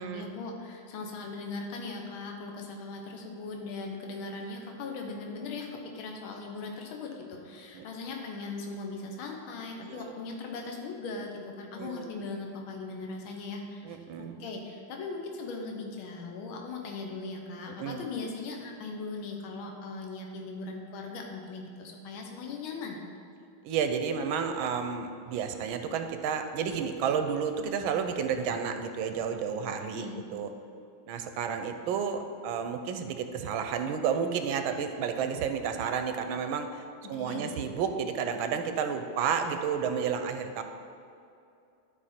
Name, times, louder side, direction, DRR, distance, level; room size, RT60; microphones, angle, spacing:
voice 1, 0.0-23.0 29.9-30.2 37.0-37.5, left 3 dB, 80° left, 2 dB, 1.7 m, -39 dB
voice 2, 9.8-10.1 11.8-12.1 13.8-14.4 17.8-18.0 23.6-30.1 30.3-30.5 31.1-36.8 37.1-40.6, right 7 dB, 80° right, 7 dB, 1.4 m, -31 dB
12.0 x 4.8 x 4.3 m, 2.6 s
omnidirectional pair, 2.3 m